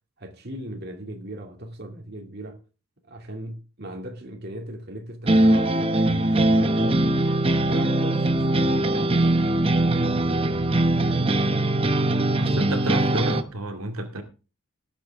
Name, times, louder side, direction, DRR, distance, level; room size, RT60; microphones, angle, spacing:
voice 1, 0.2-2.6 3.1-7.2 7.7-11.9, right 1 dB, 50° right, 2.5 m, -38 dB
sound 1, 5.3-13.4, right 1 dB, 25° right, 0.8 m, -21 dB
voice 2, 12.4-14.2, right 1 dB, 90° right, 2.3 m, -30 dB
18.5 x 8.4 x 3.6 m
head